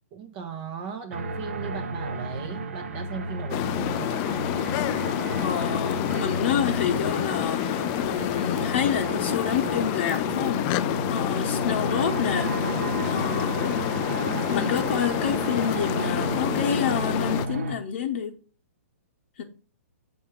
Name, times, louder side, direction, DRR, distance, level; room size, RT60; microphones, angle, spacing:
voice 1, 0.1-4.2, right 6 dB, 35° right, 0.8 m, -37 dB
sound 1, 1.1-17.7, right 2 dB, 65° right, 0.9 m, -32 dB
sound 2, 3.5-17.5, left 15 dB, 30° left, 0.3 m, -28 dB
voice 2, 5.4-13.7 14.5-18.3 19.4-19.5, left 7 dB, 50° left, 0.8 m, -29 dB
7.2 x 3.6 x 4.6 m
figure-of-eight pair, 125°, 8 cm